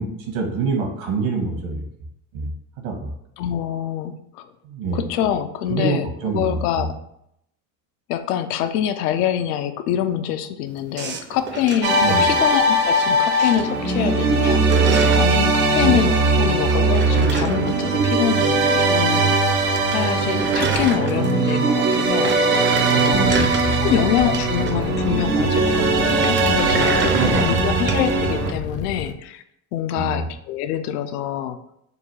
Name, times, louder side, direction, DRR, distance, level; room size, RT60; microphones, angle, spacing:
voice 1, 0.0-1.8 2.3-2.5 2.8-3.1 4.6-5.1 5.7-6.9 12.0-12.3 15.8-16.0 23.1-24.0 27.1-27.8 29.9-30.3, right 3 dB, 70° right, 2 dB, 1.4 m, -25 dB
voice 2, 3.4-4.5 4.9-6.9 8.1-14.7 15.1-19.7 19.9-23.5 23.8-29.4 29.7-31.6, left 10 dB, 85° left, 10 dB, 0.5 m, -25 dB
sound 1, 11.0-13.1 13.4-13.9 14.2-15.4 16.7-18.8 19.1-19.2 19.5-19.6 19.7-21.5 21.9-25.0 26.1-28.1, right 5 dB, 25° right, 0.5 m, -30 dB
sound 2, 11.8-28.5, right 3 dB, 90° right, 0.9 m, -19 dB
sound 3, 23.1-29.1, left 6 dB, 35° left, 0.4 m, -31 dB
4.0 x 2.3 x 4.6 m, 0.76 s
supercardioid pair, 90°, 44 cm